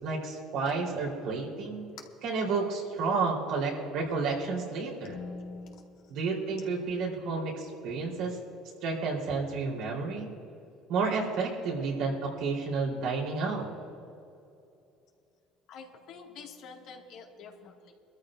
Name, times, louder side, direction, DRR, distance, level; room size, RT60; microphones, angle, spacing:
voice 1, 0.0-1.8 2.2-5.2 6.1-8.4 8.8-10.3 10.9-13.7, right 4 dB, 70° right, -2 dB, 3.8 m, -31 dB
voice 2, 5.0-6.2 15.7-17.9, left 4 dB, 70° left, 1 dB, 2.0 m, -45 dB
23.5 x 13.5 x 2.6 m, 2.6 s
supercardioid pair, 90°, 0 cm